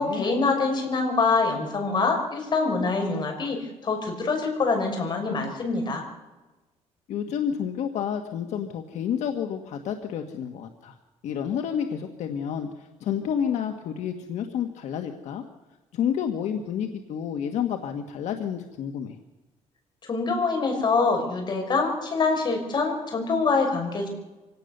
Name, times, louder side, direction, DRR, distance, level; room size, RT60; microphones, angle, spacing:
voice 1, 0.0-6.0 20.1-24.1, left 4 dB, 40° left, 3 dB, 6.1 m, -25 dB
voice 2, 7.1-10.9 11.2-15.4 15.9-19.2, left 8 dB, 75° left, 5 dB, 1.6 m, -30 dB
25.5 x 18.0 x 6.8 m, 1.1 s
cardioid pair, 135°, 12 cm